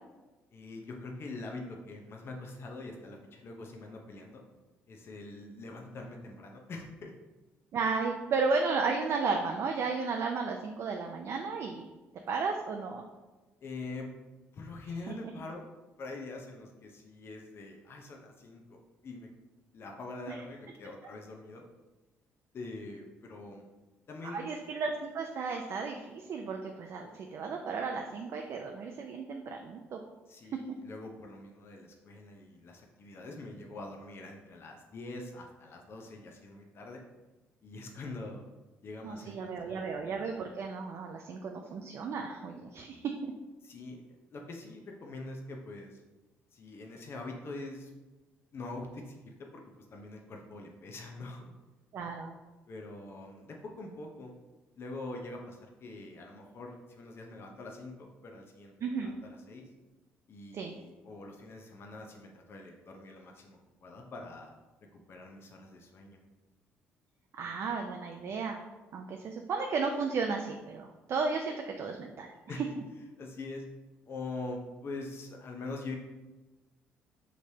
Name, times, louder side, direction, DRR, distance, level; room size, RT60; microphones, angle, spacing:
voice 1, 0.5-4.4 4.9-7.1 13.6-14.1 14.5-15.6 16.0-18.8 19.0-19.3 19.7-21.6 22.5-23.6 24.1-24.5 30.3-37.0 37.6-38.4 38.8-39.9 43.6-44.0 44.3-46.0 46.5-47.9 48.5-49.6 49.9-51.4 52.7-54.3 54.8-59.6 60.3-64.5 64.9-66.2 67.4-67.6 72.5-72.7 73.2-73.6 74.1-76.0, left 2 dB, 50° left, 1 dB, 0.7 m, -44 dB
voice 2, 7.7-11.9 12.3-13.0 15.1-15.2 20.3-20.4 24.2-30.0 39.0-43.3 51.9-52.3 58.8-59.1 60.5-60.7 67.3-68.6 68.9-72.3, right 4 dB, 55° right, 2 dB, 0.4 m, -34 dB
5.1 x 3.2 x 2.7 m, 1.2 s
supercardioid pair, 70°, 5 cm